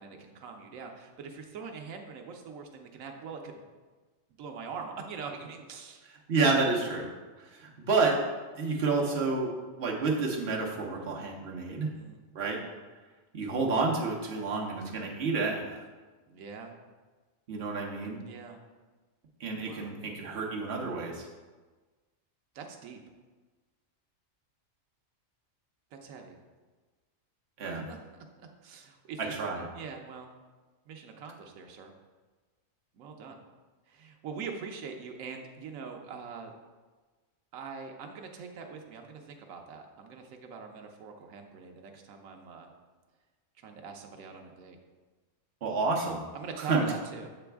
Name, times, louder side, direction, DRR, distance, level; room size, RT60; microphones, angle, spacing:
voice 1, 0.0-3.6 4.4-6.0 11.9-12.2 16.3-16.8 18.2-18.6 19.6-20.0 22.5-23.0 25.9-26.4 27.9-28.0 28.4-29.4 29.7-30.3 30.9-31.9 32.9-33.4 33.9-36.5 37.5-42.7 43.6-44.8 46.3-47.3, right 5 dB, 85° right, 3 dB, 1.1 m, -43 dB
voice 2, 6.3-7.1 7.4-8.2 8.6-9.5 9.8-11.9 12.3-12.6 13.3-15.8 17.5-18.2 19.4-21.3 27.6-27.9 29.2-29.6 45.6-46.2 46.6-46.9, right 3 dB, 55° right, -1 dB, 1.1 m, -29 dB
6.9 x 4.0 x 3.4 m, 1.3 s
omnidirectional pair, 1.4 m